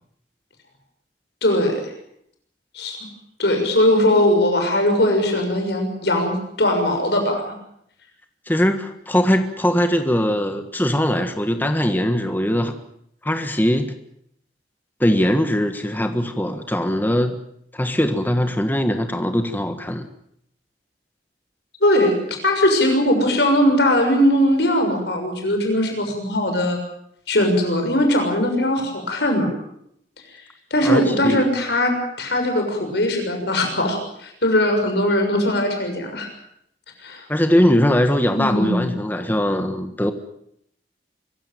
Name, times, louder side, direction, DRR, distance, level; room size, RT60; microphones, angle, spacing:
voice 1, 1.4-1.7 2.7-3.0 3.4-7.5 21.8-26.8 27.3-29.5 30.7-36.3 37.0-37.2 38.4-38.9, left 1 dB, 65° left, 3 dB, 6.7 m, -20 dB
voice 2, 8.5-12.7 13.2-13.9 15.0-17.4 17.7-20.1 30.8-31.5 37.3-40.1, equal, 10° left, 7 dB, 1.5 m, -21 dB
24.5 x 16.5 x 9.3 m, 0.72 s
head